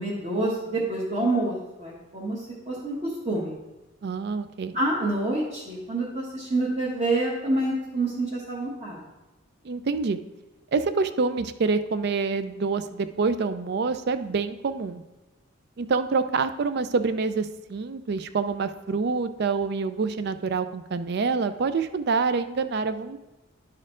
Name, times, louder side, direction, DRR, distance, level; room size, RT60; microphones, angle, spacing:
voice 1, 0.0-3.5 4.7-9.0, right 2 dB, 35° right, -6 dB, 1.2 m, -27 dB
voice 2, 4.0-4.7 9.6-10.2 10.7-15.0 15.8-23.2, right 4 dB, 55° right, 11 dB, 0.4 m, -26 dB
11.0 x 4.4 x 3.7 m, 1.1 s
head